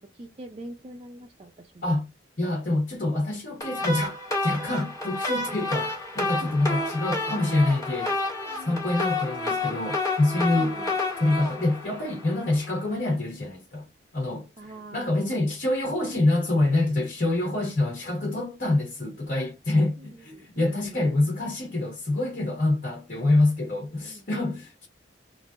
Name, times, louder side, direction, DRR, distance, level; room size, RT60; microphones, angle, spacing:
voice 1, 0.1-1.9 6.4-6.6 8.5-8.9 10.5-11.0 14.6-15.3 20.0-21.1 23.9-24.6, right 1 dB, 35° right, 0.5 m, -44 dB
voice 2, 2.4-8.1 8.6-10.8 11.2-13.9 14.1-14.5 14.9-24.9, left 2 dB, 55° left, 1.5 m, -26 dB
sound 1, 3.6-12.7, left 2 dB, 20° left, 1.3 m, -30 dB
3.5 x 2.6 x 2.5 m
head